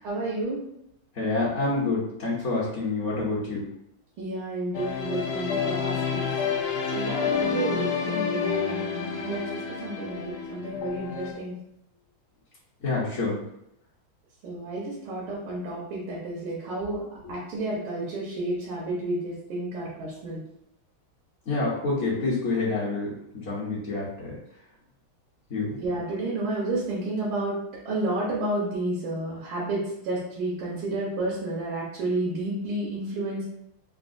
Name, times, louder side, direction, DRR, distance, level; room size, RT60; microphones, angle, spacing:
voice 1, 0.0-0.6 4.2-6.3 6.9-8.9 9.2-11.5 14.4-20.4 25.8-27.6 27.9-33.5, right 2 dB, 85° right, -6 dB, 1.7 m, -31 dB
voice 2, 1.1-3.6 12.8-13.4 21.5-24.3 25.5-25.8, left 3 dB, 55° left, -10 dB, 0.9 m, -27 dB
sound 1, 4.7-11.3, left 6 dB, 85° left, 0.8 m, -29 dB
4.0 x 2.1 x 2.5 m, 0.76 s
omnidirectional pair, 2.2 m